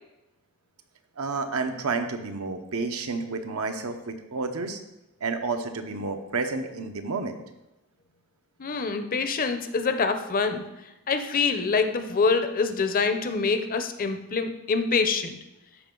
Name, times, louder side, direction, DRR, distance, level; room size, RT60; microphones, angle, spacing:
voice 1, 1.2-4.8 5.2-7.4, right 4 dB, 80° right, 7 dB, 0.9 m, -30 dB
voice 2, 8.6-10.7 11.1-15.4, left 4 dB, 40° left, 8 dB, 0.6 m, -25 dB
13.0 x 5.0 x 3.8 m, 0.95 s
head